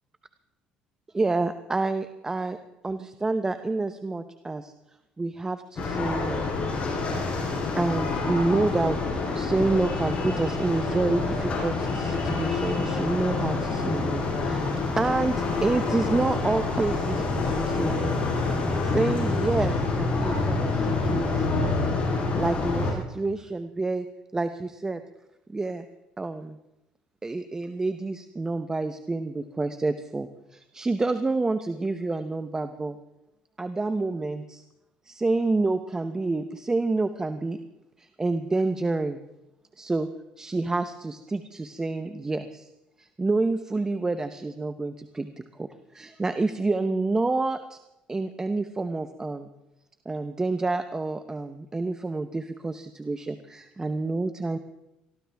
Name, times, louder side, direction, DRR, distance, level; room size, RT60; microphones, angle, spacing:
voice 1, 1.1-2.6 2.8-4.7 5.2-6.8 7.8-9.0 9.3-14.6 15.0-21.6 22.3-24.1 24.3-25.0 25.5-25.9 26.2-26.6 27.2-33.0 33.6-34.6 35.0-37.6 38.0-39.2 39.8-40.1 40.4-42.7 43.0-47.8 48.1-49.5 50.0-54.6, right 3 dB, 20° right, 10 dB, 0.8 m, -28 dB
sound 1, 5.8-22.9, left 3 dB, 45° left, 6.2 m, -27 dB
23.0 x 14.5 x 3.5 m, 0.93 s
supercardioid pair, 80°, 3 cm